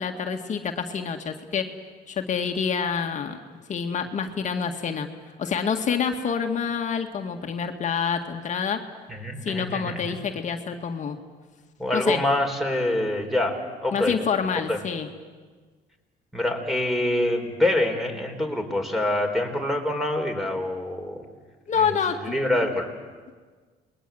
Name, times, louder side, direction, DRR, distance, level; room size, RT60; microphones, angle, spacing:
voice 1, 0.0-1.7 2.1-3.4 3.7-5.1 5.4-8.8 9.5-11.2 11.9-12.2 13.9-15.1 21.7-22.2, left 6 dB, 45° left, 4 dB, 1.9 m, -27 dB
voice 2, 9.1-10.2 11.8-14.2 14.7-14.8 16.3-21.2 21.8-21.9 22.2-22.9, left 1 dB, ahead, 4 dB, 4.4 m, -25 dB
28.5 x 21.5 x 7.8 m, 1.4 s
cardioid pair, 110°, 17 cm